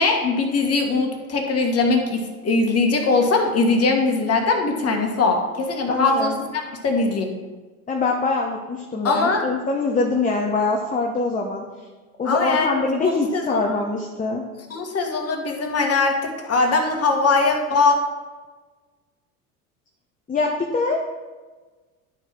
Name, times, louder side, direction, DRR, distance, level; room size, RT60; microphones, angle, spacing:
voice 1, 0.0-7.3 9.0-9.4 12.2-13.8 14.7-18.0, left 3 dB, 35° left, 3 dB, 1.6 m, -21 dB
voice 2, 5.9-6.4 7.9-11.6 12.2-14.4 20.3-21.0, left 3 dB, 20° left, 1 dB, 0.9 m, -23 dB
10.5 x 4.5 x 4.6 m, 1.3 s
hypercardioid pair, 75°, 43 cm